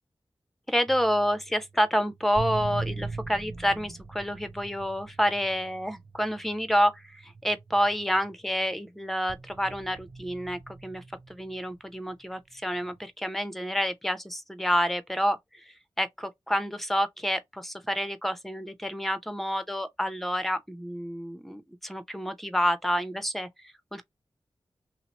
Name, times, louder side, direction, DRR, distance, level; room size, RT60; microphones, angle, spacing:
voice 1, 0.7-11.0 11.3-24.0, equal, ahead, 0.7 m, -29 dB
sound 1, 0.9-8.8 9.3-11.9 12.8-13.0, right 3 dB, 60° right, 0.6 m, -41 dB
2.8 x 2.0 x 4.0 m
cardioid pair, 45°, 10 cm